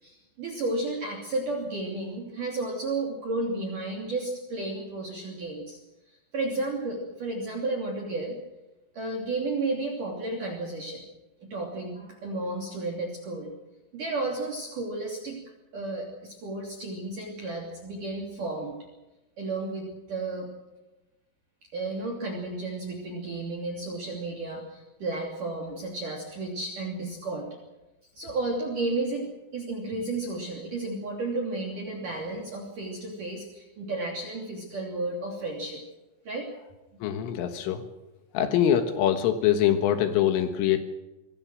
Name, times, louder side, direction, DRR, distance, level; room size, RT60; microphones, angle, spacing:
voice 1, 0.0-5.8 6.1-8.4 8.9-11.0 11.4-13.5 13.9-15.4 15.7-18.7 19.4-20.5 21.7-27.5 28.2-35.8 36.3-36.5, right 2 dB, 45° right, -1 dB, 4.0 m, -32 dB
voice 2, 37.0-37.9 38.4-40.8, left 10 dB, 80° left, 7 dB, 4.0 m, -24 dB
26.0 x 20.5 x 6.3 m, 1.0 s
omnidirectional pair, 5.7 m